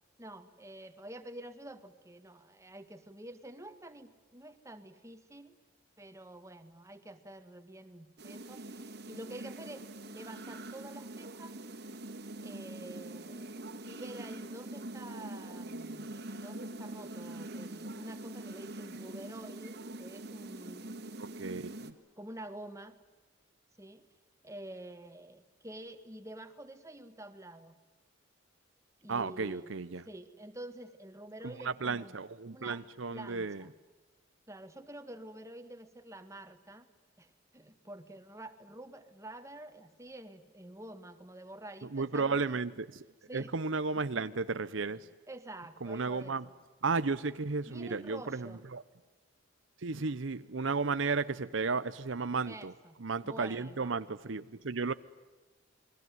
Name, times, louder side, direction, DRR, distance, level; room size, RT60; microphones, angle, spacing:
voice 1, 0.2-5.6 6.0-11.6 12.4-13.5 13.8-21.1 22.2-23.0 23.8-24.1 24.4-27.8 29.0-29.7 30.0-32.2 32.5-32.8 33.1-33.7 34.5-36.9 37.2-42.6 43.3-43.5 44.1-44.2 44.6-44.7 45.3-46.4 47.7-48.6 52.5-53.9, right 1 dB, 15° right, 1.9 m, -48 dB
sound 1, 8.2-21.9, right 2 dB, 60° right, 2.3 m, -44 dB
voice 2, 21.2-21.9 29.1-30.0 31.6-33.6 41.9-43.0 43.3-45.1 45.8-46.5 46.8-48.8 49.8-52.7 53.0-54.9, right 4 dB, 75° right, 0.8 m, -34 dB
29.0 x 21.5 x 9.4 m
head